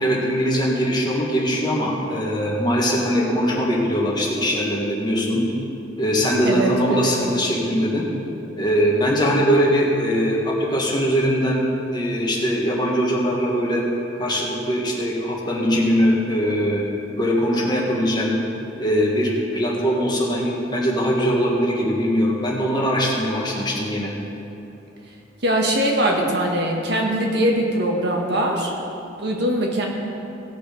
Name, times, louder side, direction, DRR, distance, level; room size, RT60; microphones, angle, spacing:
voice 1, 0.0-5.5 6.0-8.1 8.6-11.6 11.9-13.9 14.1-16.8 17.2-18.3 18.8-24.1, equal, 20° left, -3 dB, 1.6 m, -21 dB
voice 2, 6.4-7.1 25.4-28.7 29.2-29.9, right 1 dB, 60° right, 0 dB, 1.5 m, -21 dB
17.5 x 5.9 x 5.1 m, 2.8 s
head